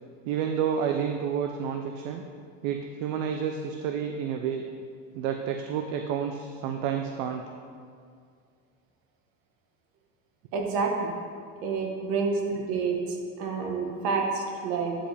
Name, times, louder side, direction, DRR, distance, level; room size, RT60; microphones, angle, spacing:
voice 1, 0.2-2.2 2.6-4.6 5.1-7.4, right 8 dB, 75° right, 4 dB, 0.6 m, -30 dB
voice 2, 10.5-11.1 11.6-13.0 13.4-15.0, right 4 dB, 60° right, 1 dB, 1.4 m, -28 dB
9.8 x 5.1 x 3.4 m, 2.2 s
supercardioid pair, 130°, 40 cm